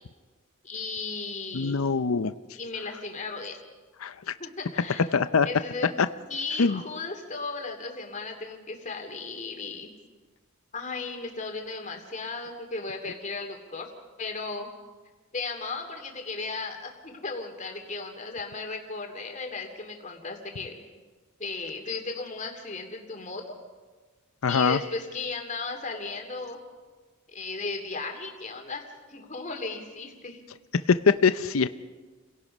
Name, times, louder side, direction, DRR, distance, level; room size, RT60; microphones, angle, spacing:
voice 1, 0.6-1.8 2.5-3.6 4.4-5.1 5.4-6.0 6.3-9.9 10.7-13.9 14.2-14.7 15.3-20.8 21.4-23.4 24.5-26.6 27.3-28.8 29.1-30.4, left 3 dB, 35° left, 3 dB, 2.7 m, -35 dB
voice 2, 1.5-2.3 4.0-4.1 5.1-5.5 6.6-6.8 24.4-24.8 31.1-31.7, left 5 dB, 70° left, 13 dB, 0.6 m, -23 dB
29.0 x 17.5 x 5.4 m, 1.4 s
head